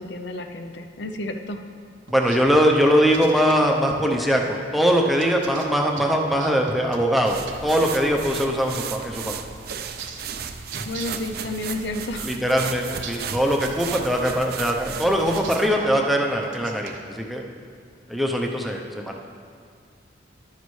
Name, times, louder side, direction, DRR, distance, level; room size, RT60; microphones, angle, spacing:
voice 1, 0.0-1.6 10.8-12.4, left 2 dB, 60° left, 6 dB, 0.5 m, -31 dB
voice 2, 2.1-7.4 7.6-9.3 12.2-17.4 18.1-19.1, equal, ahead, 0 dB, 0.6 m, -21 dB
sound 1, 2.1-3.6 5.2-7.6 9.7-11.3 12.6-14.1 15.1-16.0 16.4-17.0, right 4 dB, 85° right, 0.8 m, -38 dB
sound 2, 7.2-15.8, right 7 dB, 55° right, 0.5 m, -35 dB
11.0 x 9.4 x 3.2 m, 2.1 s
head